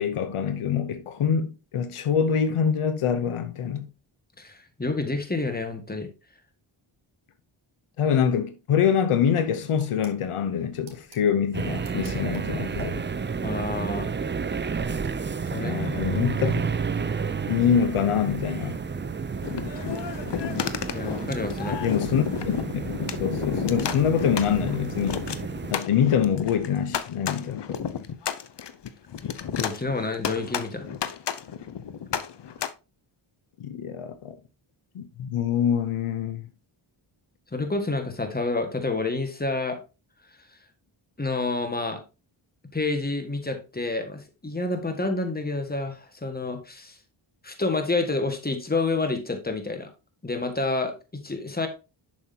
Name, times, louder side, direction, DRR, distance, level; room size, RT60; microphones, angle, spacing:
voice 1, 0.0-3.9 8.0-13.0 15.5-16.6 17.5-18.8 21.8-22.8 23.2-25.3 25.7-27.8 33.6-34.3 34.9-36.5, left 8 dB, 85° left, 0.9 m, -25 dB
voice 2, 4.4-6.1 13.4-14.1 15.5-15.9 20.9-21.8 29.6-31.0 37.5-39.8 41.2-42.0 42.7-47.0 47.4-49.9 50.2-51.7, left 3 dB, 20° left, 1.7 m, -29 dB
sound 1, 9.7-15.1, right 4 dB, 70° right, 2.1 m, -43 dB
sound 2, 11.5-25.7, right 5 dB, 25° right, 0.5 m, -31 dB
sound 3, 19.4-32.7, left 8 dB, 55° left, 0.8 m, -32 dB
7.2 x 6.4 x 2.8 m
cardioid pair, 65°, 49 cm